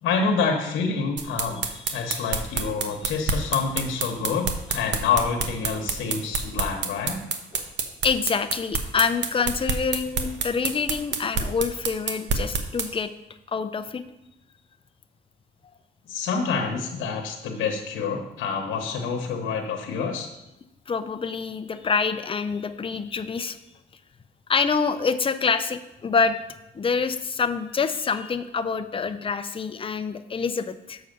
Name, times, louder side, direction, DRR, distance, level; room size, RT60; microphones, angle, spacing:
voice 1, 0.0-7.2 16.1-20.3, left 5 dB, 90° left, 3 dB, 1.1 m, -27 dB
sound 1, 1.2-12.9, right 5 dB, 65° right, 1.0 m, -27 dB
voice 2, 8.0-13.1 13.5-14.0 20.9-23.6 24.5-26.4 26.7-31.0, left 5 dB, 25° left, 10 dB, 0.6 m, -26 dB
6.8 x 4.9 x 6.6 m, 0.90 s
cardioid pair, 90°, 20 cm